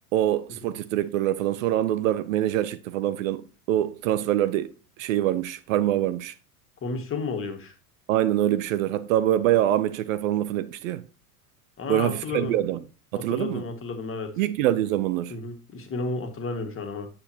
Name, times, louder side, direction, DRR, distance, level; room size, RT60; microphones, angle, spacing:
voice 1, 0.1-4.7 5.0-6.3 8.1-11.0 11.9-12.8 13.1-13.6 14.4-15.3, right 12 dB, 60° right, 0.8 m, -24 dB
voice 2, 6.8-7.7 11.8-12.6 13.1-14.3 15.3-17.1, left 3 dB, 30° left, 2.0 m, -32 dB
8.8 x 7.6 x 3.0 m
figure-of-eight pair, 80°, 45 cm